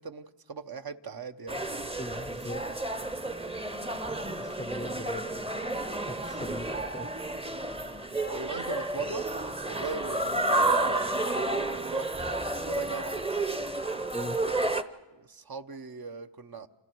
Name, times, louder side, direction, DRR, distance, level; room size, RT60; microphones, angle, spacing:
voice 1, 0.0-1.6 8.3-9.3 9.7-13.2 15.1-16.7, right 5 dB, 45° right, 8 dB, 1.0 m, -39 dB
sound 1, 1.5-14.8, right 2 dB, 10° right, 0.9 m, -31 dB
voice 2, 2.0-2.6 4.3-5.6 6.0-7.1 14.1-14.4, left 2 dB, 15° left, 12 dB, 0.7 m, -40 dB
28.5 x 28.0 x 4.7 m, 1.2 s
wide cardioid pair, 115°, 49 cm